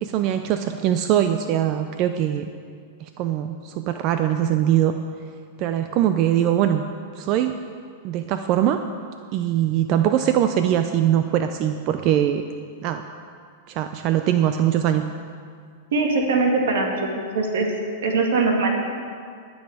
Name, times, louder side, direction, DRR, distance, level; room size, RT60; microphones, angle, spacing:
voice 1, 0.0-2.5 3.0-4.9 5.6-6.8 7.2-7.6 8.0-8.8 9.3-12.4 12.8-13.0 13.7-15.0, right 11 dB, 45° right, 8 dB, 0.5 m, -22 dB
voice 2, 15.9-17.7 18.0-18.7, right 3 dB, 75° right, 1 dB, 2.1 m, -21 dB
18.5 x 6.3 x 4.9 m, 2.2 s
hypercardioid pair, 125°, 0 cm